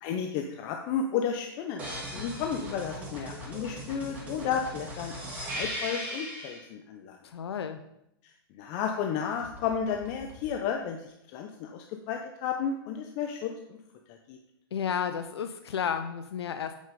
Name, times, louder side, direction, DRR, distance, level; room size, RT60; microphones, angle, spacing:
voice 1, 0.0-7.2 8.2-13.8 14.1-14.4, left 7 dB, 40° left, 4 dB, 0.8 m, -33 dB
sound 1, 1.8-6.6 9.4-10.5, equal, 10° right, 2.8 m, -39 dB
voice 2, 7.2-7.8 14.7-16.7, left 7 dB, 85° left, 9 dB, 0.6 m, -32 dB
8.2 x 5.6 x 5.3 m, 0.81 s
hypercardioid pair, 130°, 13 cm